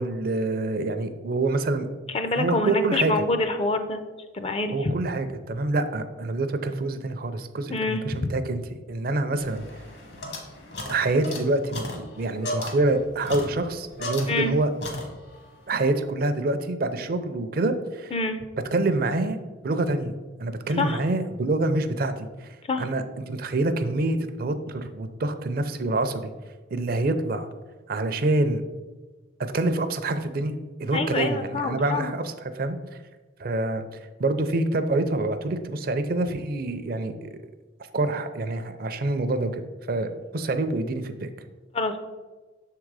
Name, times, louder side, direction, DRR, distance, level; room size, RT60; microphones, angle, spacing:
voice 1, 0.0-1.9 2.4-3.1 4.7-8.6 8.9-9.6 10.9-14.7 15.7-18.1 18.7-19.4 19.6-20.1 20.4-22.5 22.8-26.3 26.7-27.5 27.9-28.6 29.4-33.0 33.4-33.8 34.2-37.3 37.9-39.6 39.9-41.3, right 2 dB, 50° right, 9 dB, 0.4 m, -26 dB
voice 2, 2.1-4.0 4.3-4.9 7.7-8.3 14.3-14.5 18.1-18.4 20.8-21.0 22.7-22.9 30.9-32.1 41.7-42.0, left 2 dB, 30° left, 8 dB, 0.4 m, -26 dB
sound 1, 9.4-14.5 14.8-15.5, left 1 dB, 60° left, 1.2 m, -36 dB
6.9 x 3.7 x 4.7 m, 1.3 s
head